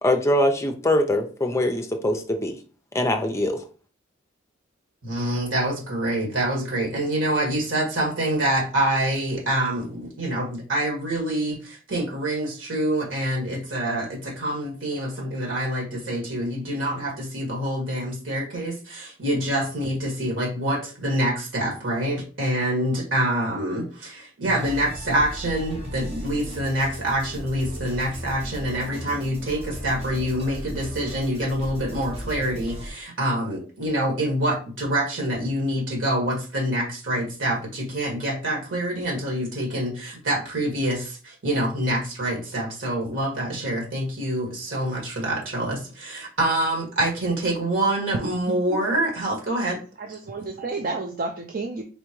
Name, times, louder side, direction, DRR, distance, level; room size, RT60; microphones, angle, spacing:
voice 1, 0.0-2.6 2.9-3.6, left 1 dB, 15° left, 5 dB, 0.5 m, -23 dB
voice 2, 5.0-49.8, right 1 dB, 90° right, -2 dB, 1.8 m, -26 dB
sound 1, 24.4-32.9, equal, 30° right, 1.3 m, -36 dB
voice 3, 50.0-51.8, right 3 dB, 45° right, 4 dB, 0.5 m, -31 dB
4.2 x 3.4 x 3.1 m, 0.38 s
head